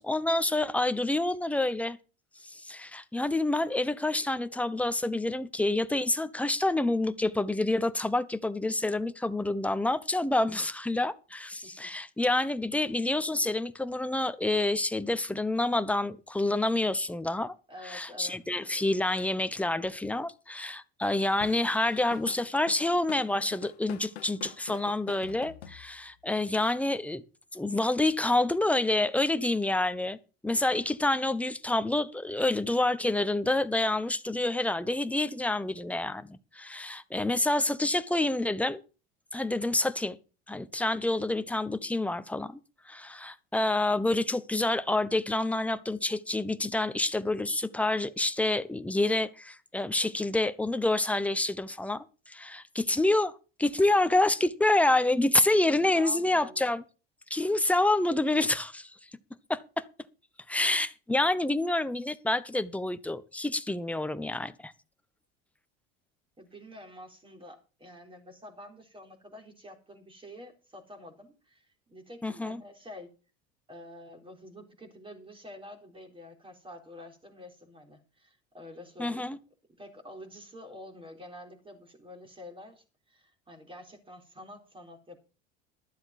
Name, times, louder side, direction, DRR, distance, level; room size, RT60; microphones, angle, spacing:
voice 1, 0.0-2.0 2.4-17.5 17.8-27.2 27.5-30.2 30.4-38.8 39.3-40.2 40.5-42.6 42.8-53.3 53.6-56.8 57.3-58.9 59.5-59.8 60.5-64.7 72.2-72.6 79.0-79.4, left 2 dB, 5° left, 1.0 m, -28 dB
voice 2, 17.7-18.4 55.0-55.4 55.7-56.7 66.4-73.1 73.7-79.4 79.8-85.2, left 1 dB, 15° right, 4.0 m, -48 dB
Drum kit / Drum, 21.4-26.2, left 10 dB, 85° left, 1.3 m, -46 dB
12.5 x 7.8 x 5.9 m
hypercardioid pair, 85°, 31 cm